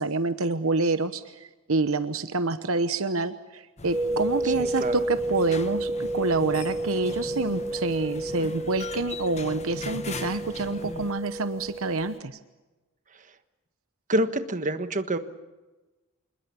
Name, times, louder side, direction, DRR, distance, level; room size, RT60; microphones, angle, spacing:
voice 1, 0.0-12.4, right 3 dB, 70° right, 11 dB, 1.0 m, -27 dB
sound 1, 3.8-11.1, left 3 dB, 30° left, 1.0 m, -40 dB
sound 2, 3.9-12.2, right 1 dB, 10° right, 0.9 m, -31 dB
voice 2, 4.4-5.0 14.1-15.2, right 1 dB, 35° right, 9 dB, 1.4 m, -27 dB
27.0 x 21.0 x 7.1 m, 1.1 s
head